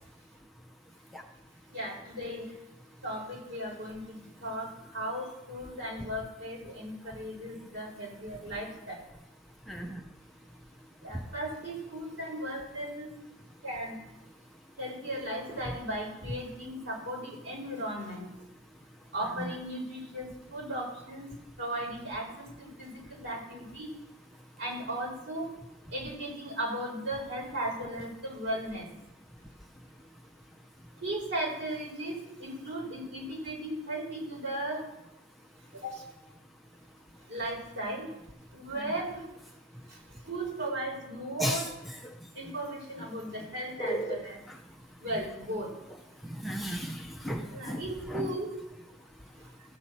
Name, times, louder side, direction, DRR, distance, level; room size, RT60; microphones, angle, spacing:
voice 1, 1.7-2.5 3.0-9.0 11.0-13.1 13.6-14.0 14.8-18.3 19.1-21.3 21.6-23.9 24.6-25.5 25.9-28.9 31.0-34.8 35.7-36.0 37.3-38.0 38.5-39.2 39.9-40.0 40.2-41.7 42.3-44.4 45.0-45.7 47.5-48.5, right 1 dB, 65° right, -3 dB, 4.0 m, -36 dB
voice 2, 9.7-10.0 19.4-19.5 41.4-42.0 43.8-44.2 46.3-47.8 48.1-48.3, equal, ahead, 0 dB, 0.6 m, -34 dB
14.5 x 7.5 x 4.2 m, 0.93 s
head